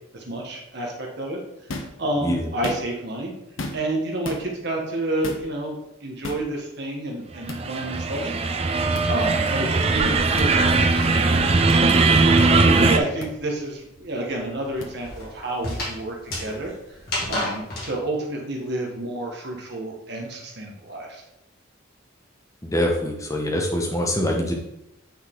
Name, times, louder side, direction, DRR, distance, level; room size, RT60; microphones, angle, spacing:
voice 1, 0.1-1.4 2.0-3.3 3.7-5.8 6.0-8.4 9.1-10.8 11.2-12.1 12.6-17.0 17.3-21.2, right 1 dB, 55° right, 0 dB, 1.2 m, -29 dB
sound 1, 1.7-2.0 2.5-3.1 3.6-4.0 4.2-4.4 5.2-5.5 6.2-6.5 7.5-7.6 8.9-9.1 10.4-10.5 11.7-11.8 13.2-13.3 14.8-14.9, left 2 dB, 75° left, 0.9 m, -33 dB
sound 2, 7.5-13.0, right 3 dB, 30° right, 0.4 m, -19 dB
sound 3, 8.0-11.8 12.1-17.9, left 1 dB, 50° left, 2.3 m, -34 dB
voice 2, 22.6-24.5, equal, 15° left, 0 dB, 1.0 m, -24 dB
8.6 x 4.0 x 3.8 m, 0.85 s
head